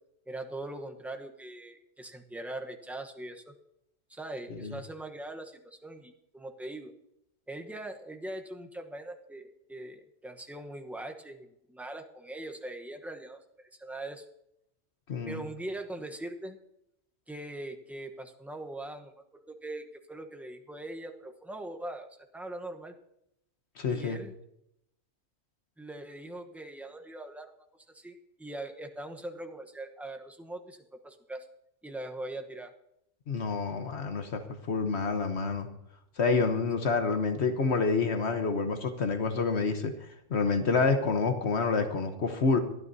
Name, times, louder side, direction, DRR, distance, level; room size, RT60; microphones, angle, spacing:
voice 1, 0.3-3.5 4.1-6.9 7.5-14.2 15.2-16.6 17.3-19.1 19.5-22.9 23.9-24.3 25.8-27.5 27.9-31.5 31.8-32.7, right 1 dB, ahead, 4 dB, 0.8 m, -41 dB
voice 2, 15.1-15.4 23.8-24.2 33.3-34.4 34.7-35.7 36.2-39.9 40.3-42.6, left 4 dB, 70° left, 7 dB, 1.3 m, -28 dB
22.0 x 12.0 x 2.7 m, 0.82 s
omnidirectional pair, 1.2 m